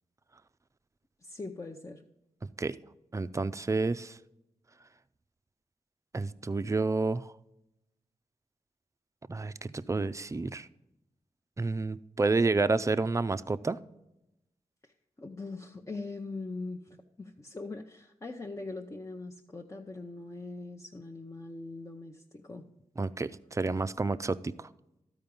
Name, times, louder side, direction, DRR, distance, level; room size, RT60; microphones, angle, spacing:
voice 1, 1.2-2.0 15.2-22.7, left 3 dB, 25° left, 2 dB, 0.8 m, -41 dB
voice 2, 2.4-2.8 3.1-4.2 6.1-7.3 9.3-10.7 11.6-13.8 23.0-24.7, right 3 dB, 20° right, 12 dB, 0.4 m, -30 dB
12.5 x 4.8 x 5.3 m, 0.89 s
cardioid pair, 45°, 14 cm